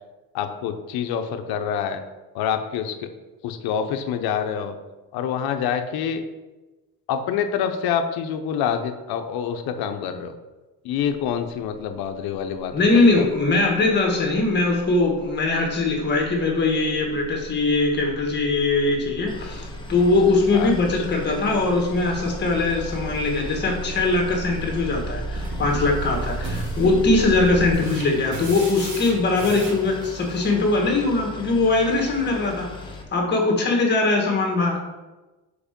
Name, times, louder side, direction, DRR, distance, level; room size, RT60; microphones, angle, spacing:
voice 1, 0.3-2.0 2.3-3.1 3.4-4.7 5.1-6.2 7.1-10.3 10.8-13.3 20.5-21.0, left 8 dB, 75° left, 7 dB, 0.8 m, -27 dB
sound 1, 11.0-11.3 11.6-27.7, right 3 dB, 85° right, 1.4 m, -35 dB
voice 2, 12.7-34.8, left 3 dB, 30° left, 0 dB, 1.6 m, -21 dB
Boat Water vehicle, 19.3-33.0, left 3 dB, 15° left, 0.8 m, -39 dB
sound 2, 25.3-30.4, right 2 dB, 50° right, 2.0 m, -37 dB
5.0 x 4.7 x 5.1 m, 1.2 s
cardioid pair, 135°, 37 cm